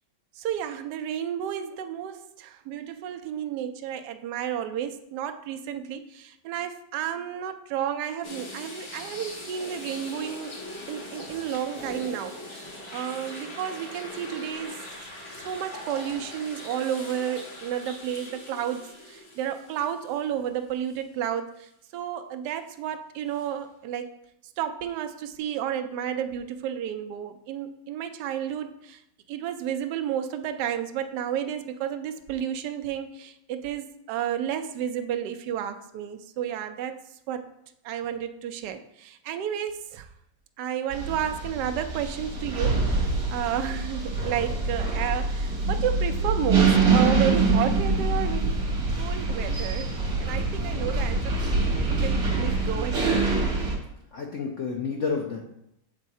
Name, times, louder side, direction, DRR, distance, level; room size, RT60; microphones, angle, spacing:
voice 1, 0.4-10.6 10.9-14.8 15.4-24.1 24.6-29.0 29.3-37.0 37.3-37.5 37.8-40.1 40.6-48.6 49.0-49.9 50.2-53.1, right 9 dB, 70° right, 8 dB, 1.0 m, -32 dB
sound 1, 8.2-20.5 20.9-21.0 23.3-23.5, left 1 dB, 50° left, 1.6 m, -41 dB
sound 2, 40.9-53.7, right 3 dB, 50° right, 1.8 m, -25 dB
voice 2, 54.1-55.4, left 5 dB, 70° left, 0 dB, 0.7 m, -30 dB
7.5 x 3.6 x 4.2 m, 0.78 s
omnidirectional pair, 2.2 m